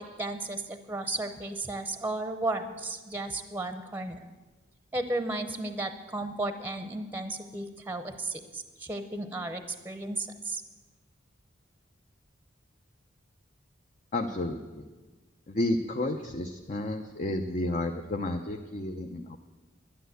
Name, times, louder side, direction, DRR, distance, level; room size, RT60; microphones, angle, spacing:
voice 1, 0.0-4.2 4.9-10.6, right 2 dB, 10° right, 9 dB, 0.8 m, -34 dB
voice 2, 14.1-14.8 15.5-19.4, left 1 dB, 40° left, 4 dB, 0.7 m, -31 dB
11.5 x 10.5 x 8.0 m, 1.3 s
head